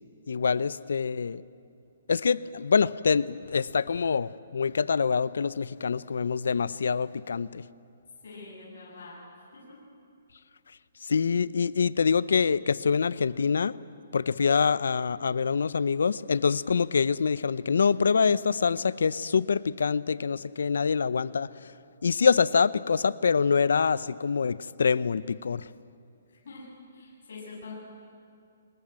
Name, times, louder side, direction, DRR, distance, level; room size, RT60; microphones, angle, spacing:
voice 1, 0.3-1.4 2.1-7.6 11.0-13.8 14.1-21.5 22.0-25.7, left 5 dB, 80° left, 19 dB, 0.7 m, -25 dB
voice 2, 8.2-9.8 26.3-26.7 26.9-27.7, left 3 dB, 60° left, -4 dB, 7.4 m, -45 dB
24.0 x 20.5 x 9.1 m, 2.5 s
hypercardioid pair, 165°, 0 cm